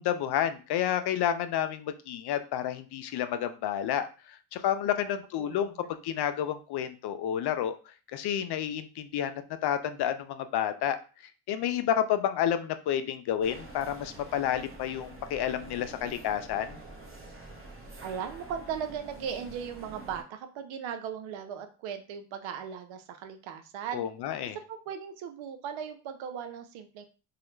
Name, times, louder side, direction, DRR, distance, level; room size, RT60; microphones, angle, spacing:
voice 1, 0.0-5.7 6.0-7.8 8.1-11.0 11.5-16.8 23.9-24.6, left 10 dB, 55° left, 10 dB, 0.5 m, -30 dB
voice 2, 5.4-5.9 18.0-24.0 24.7-27.1, right 8 dB, 70° right, 8 dB, 0.6 m, -38 dB
sound 1, 13.4-20.2, right 2 dB, 25° right, 0.8 m, -47 dB
2.3 x 2.1 x 3.1 m, 0.35 s
supercardioid pair, 60°, 48 cm